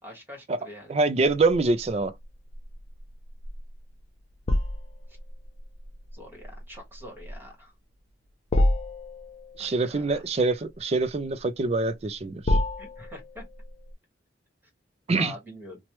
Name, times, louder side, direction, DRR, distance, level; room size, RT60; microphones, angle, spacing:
voice 1, 0.0-1.0 6.1-7.7 9.6-10.2 12.8-13.4 15.1-15.8, left 1 dB, 10° right, 1.4 m, -44 dB
voice 2, 0.9-2.1 9.6-12.6 15.1-15.3, right 3 dB, 35° right, 0.4 m, -25 dB
sound 1, 1.5-13.9, left 1 dB, 35° left, 0.5 m, -31 dB
3.0 x 2.2 x 3.0 m
head